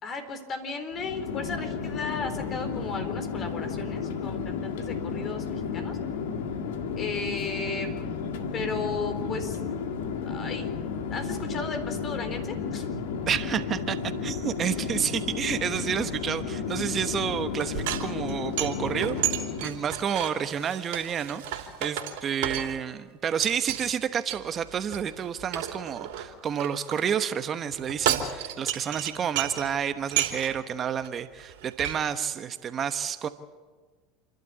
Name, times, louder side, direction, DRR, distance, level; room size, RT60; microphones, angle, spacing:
voice 1, 0.0-6.0 7.0-7.9 8.5-9.6 10.3-10.7 11.1-12.9, left 4 dB, 40° left, 7 dB, 4.2 m, -35 dB
Chatter / Fixed-wing aircraft airplane, 0.9-19.8, left 6 dB, 80° left, 2.0 m, -33 dB
voice 2, 13.3-19.2 19.6-33.3, right 8 dB, 35° right, 10 dB, 1.1 m, -30 dB
sound 1, 17.5-23.0 23.4-23.8 24.3-27.0 27.7-29.7 30.0-30.6 31.0-31.1 31.4-31.9, right 11 dB, 70° right, 3.1 m, -32 dB
28.5 x 12.0 x 8.5 m, 1.4 s
hypercardioid pair, 95°, 0 cm